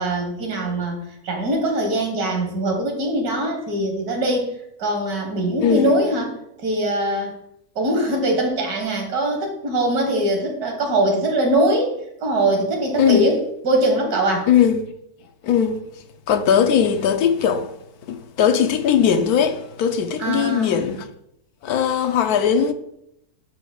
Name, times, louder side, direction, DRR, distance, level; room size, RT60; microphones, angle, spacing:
voice 1, 0.0-4.5 4.8-7.3 7.8-11.9 12.2-14.5 20.2-20.9, right 1 dB, 75° right, 2.1 m, -22 dB
voice 2, 5.6-6.0 13.0-13.3 14.5-14.8 15.4-15.8 16.3-17.7 18.1-21.1 21.6-22.7, left 8 dB, 80° left, 1.2 m, -19 dB
11.0 x 6.6 x 2.3 m
omnidirectional pair, 1.6 m